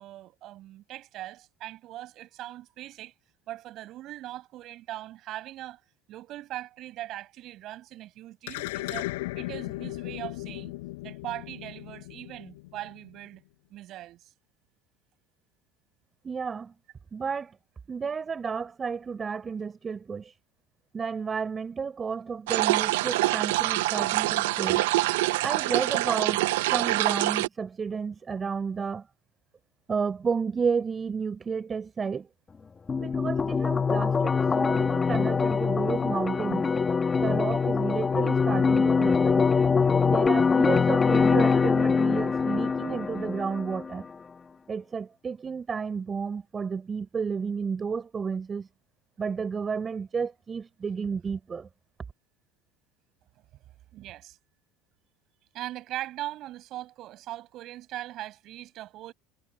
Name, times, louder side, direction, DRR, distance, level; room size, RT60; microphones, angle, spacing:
voice 1, 0.0-3.1 3.5-5.8 6.1-9.1 9.4-10.7 11.0-13.4 13.7-14.3 53.9-54.4 55.5-59.1, right 14 dB, 55° right, 6.1 m, -40 dB
sound 1, 8.5-13.1, left 21 dB, 85° left, 5.3 m, -36 dB
voice 2, 16.2-16.7 17.1-17.6 17.9-20.3 20.9-24.9 25.4-26.4 26.7-29.1 29.9-32.3 33.0-36.7 37.2-39.4 40.1-44.1 44.7-48.7 49.2-51.7, right 5 dB, 25° right, 6.0 m, -31 dB
sound 2, 22.5-27.5, right 18 dB, 85° right, 0.5 m, -25 dB
sound 3, 32.9-43.9, left 5 dB, 25° left, 1.8 m, -23 dB
supercardioid pair, 105°, 0 cm